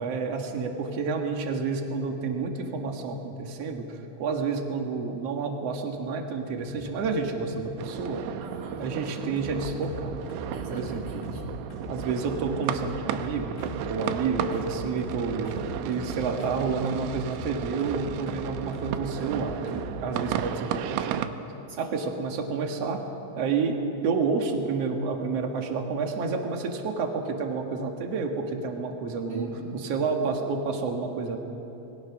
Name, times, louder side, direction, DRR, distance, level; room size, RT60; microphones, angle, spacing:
voice 1, 0.0-8.3 8.8-10.1 10.7-11.2 11.9-13.6 13.9-15.6 15.8-21.3 21.8-23.0 23.4-29.5 29.8-31.4, right 4 dB, 70° right, 3 dB, 1.5 m, -29 dB
sound 1, 6.5-20.5, left 1 dB, 70° left, 7.2 m, -41 dB
sound 2, 7.8-21.3, right 10 dB, 90° right, 3.2 m, -34 dB
voice 2, 8.4-8.9 10.5-11.6 21.7-22.1 29.3-29.9, right 2 dB, 35° right, -1 dB, 2.4 m, -42 dB
27.0 x 21.0 x 6.0 m, 3.0 s
omnidirectional pair, 5.5 m